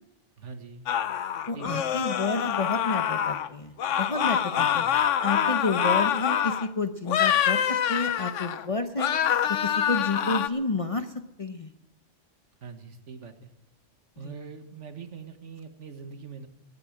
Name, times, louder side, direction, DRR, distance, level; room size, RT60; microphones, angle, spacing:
voice 1, 0.4-0.9 1.5-1.8 4.6-4.9 12.6-13.5 14.2-16.5, right 5 dB, 70° right, 9 dB, 1.7 m, -42 dB
sound 1, 0.9-3.5 3.8-6.7 7.1-8.6 9.0-10.5, left 9 dB, 80° left, 1.1 m, -26 dB
voice 2, 1.5-11.1 11.4-11.7 14.2-14.3, left 3 dB, 30° left, 8 dB, 0.8 m, -30 dB
19.0 x 8.5 x 8.6 m, 0.97 s
omnidirectional pair, 1.3 m